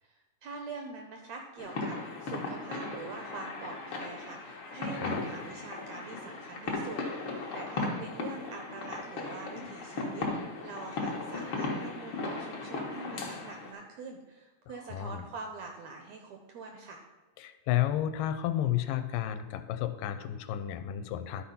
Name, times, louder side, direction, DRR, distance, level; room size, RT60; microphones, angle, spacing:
voice 1, 0.0-17.0, right 4 dB, 75° right, 3 dB, 1.7 m, -44 dB
sound 1, 1.6-13.7, left 3 dB, 60° left, 1.5 m, -37 dB
voice 2, 14.9-15.2 17.4-21.4, left 12 dB, 85° left, 10 dB, 2.2 m, -32 dB
11.5 x 4.3 x 5.5 m, 1.2 s
omnidirectional pair, 3.9 m